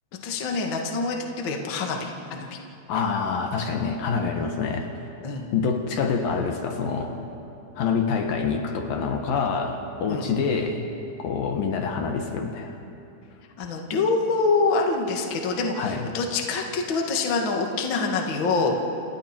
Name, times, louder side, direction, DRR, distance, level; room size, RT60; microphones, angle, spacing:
voice 1, 0.2-2.6 5.2-5.5 10.1-10.3 13.6-18.8, left 3 dB, 40° left, 1 dB, 2.0 m, -25 dB
voice 2, 2.9-4.9 5.5-7.2 7.8-10.9 11.2-12.8 15.8-16.1, left 5 dB, 65° left, 4 dB, 2.9 m, -26 dB
29.0 x 29.0 x 4.5 m, 2.7 s
omnidirectional pair, 4.6 m